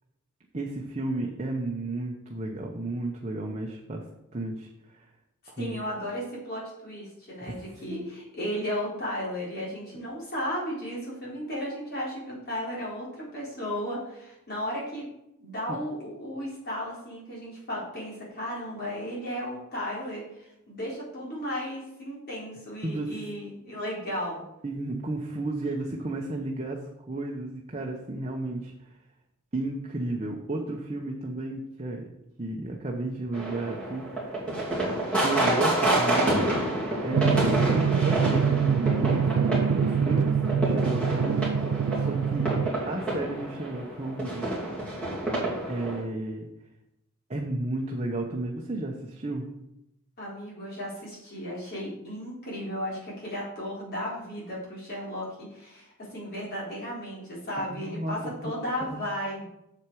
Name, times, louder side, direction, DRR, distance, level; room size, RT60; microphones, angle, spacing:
voice 1, 0.5-4.0 4.3-5.1 5.5-5.9 7.4-8.1 15.7-15.8 22.8-23.2 24.6-26.8 27.0-28.7 29.5-32.1 32.4-34.3 35.2-36.3 37.0-42.5 42.9-44.6 45.7-46.5 47.3-49.5 57.6-58.5 58.8-59.0, right 2 dB, 30° right, 0 dB, 0.9 m, -33 dB
voice 2, 5.6-15.1 15.4-24.4 50.2-59.5, equal, 45° left, -5 dB, 4.0 m, -35 dB
sound 1, 33.3-46.0, right 1 dB, 5° left, 2.7 m, -28 dB
Drum, 37.1-42.7, right 7 dB, 70° right, 0.3 m, -25 dB
8.1 x 7.0 x 4.7 m, 0.85 s
head